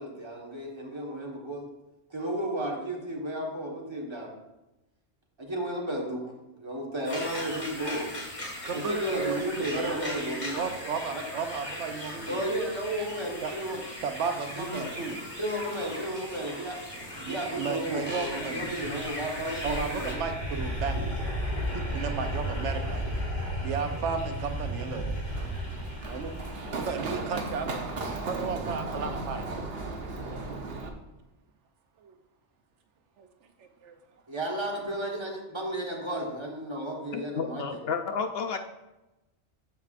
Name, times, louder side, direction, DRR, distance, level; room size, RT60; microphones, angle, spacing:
voice 1, 0.0-1.7 2.1-4.3 5.4-8.1 8.7-10.6 11.1-11.2 12.3-13.8 14.6-14.9 15.4-16.8 17.2-20.2 34.3-37.7, right 1 dB, 25° right, -2 dB, 1.4 m, -33 dB
sound 1, 7.0-20.1, left 1 dB, 30° left, 1.7 m, -39 dB
voice 2, 8.6-12.4 13.4-13.5 14.0-15.2 17.2-18.7 19.6-21.1 21.7-23.0 23.6-25.2 26.1-26.4 26.7-27.7 28.2-29.5 32.0-32.1 33.2-33.3 33.6-33.9, right 5 dB, 90° right, 7 dB, 1.0 m, -34 dB
sound 2, 17.8-27.0, equal, 85° left, 2.9 m, -34 dB
Run, 25.3-30.9, right 3 dB, 60° right, 1.0 m, -36 dB
voice 3, 37.1-38.6, left 5 dB, 65° left, 7 dB, 0.7 m, -31 dB
14.0 x 4.7 x 2.5 m, 0.99 s
omnidirectional pair, 1.2 m